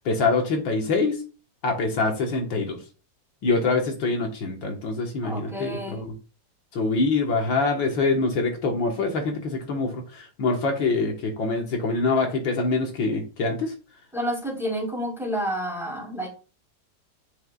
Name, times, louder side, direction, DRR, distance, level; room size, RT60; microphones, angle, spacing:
voice 1, 0.1-1.2 1.6-2.8 3.4-6.1 6.7-13.7, left 3 dB, 75° left, 2 dB, 2.1 m, -25 dB
voice 2, 5.2-6.0 14.1-16.3, equal, ahead, -1 dB, 3.2 m, -29 dB
11.5 x 5.6 x 2.4 m, 0.34 s
omnidirectional pair, 2.1 m